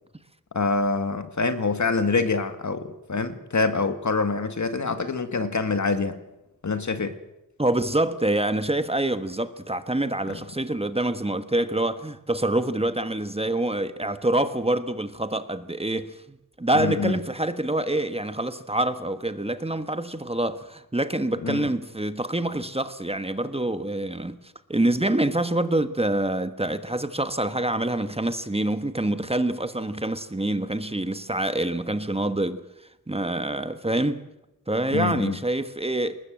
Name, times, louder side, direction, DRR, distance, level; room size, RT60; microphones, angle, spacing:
voice 1, 0.5-6.2 6.6-7.2 16.7-17.2 21.4-21.7 34.9-35.4, left 4 dB, 55° left, 2.1 m, -25 dB
voice 2, 7.6-24.4 24.7-32.6 33.1-34.2 34.7-36.2, right 1 dB, 15° right, 1.3 m, -26 dB
20.5 x 20.0 x 7.7 m
cardioid pair, 55°, 35 cm